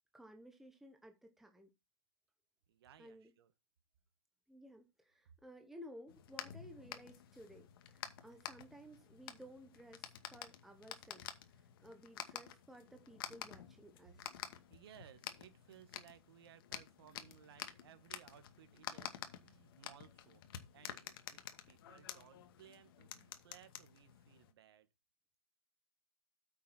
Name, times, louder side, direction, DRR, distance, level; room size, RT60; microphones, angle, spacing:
voice 1, 0.1-1.7 3.0-3.3 4.5-14.4, equal, ahead, 1.1 m, -56 dB
voice 2, 2.7-3.5 14.7-24.9, right 10 dB, 45° right, 2.1 m, -61 dB
sound 1, 6.1-24.5, left 10 dB, 40° left, 2.2 m, -50 dB
8.7 x 7.1 x 4.4 m
hypercardioid pair, 155°, 18 cm